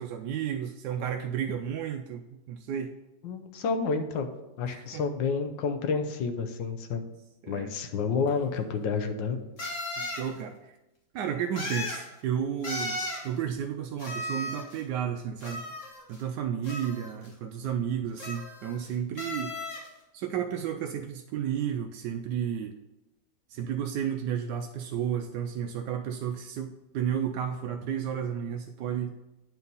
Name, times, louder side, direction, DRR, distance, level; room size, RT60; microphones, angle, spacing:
voice 1, 0.0-2.9 4.7-5.0 7.4-7.7 10.0-10.8 11.1-13.0 13.2-15.6 16.1-19.5 20.1-22.7 23.5-29.1, right 9 dB, 70° right, 4 dB, 1.1 m, -32 dB
voice 2, 3.2-4.3 4.6-7.0 7.5-9.4, left 5 dB, 75° left, 7 dB, 1.5 m, -29 dB
sound 1, 8.3-8.4 9.6-10.3 11.6-12.1 12.6-13.3 14.0-14.8 15.4-16.2 16.6-17.3 18.2-18.9 19.2-19.9, left 1 dB, 40° left, 1.7 m, -36 dB
9.5 x 4.5 x 5.4 m, 0.97 s
omnidirectional pair, 2.1 m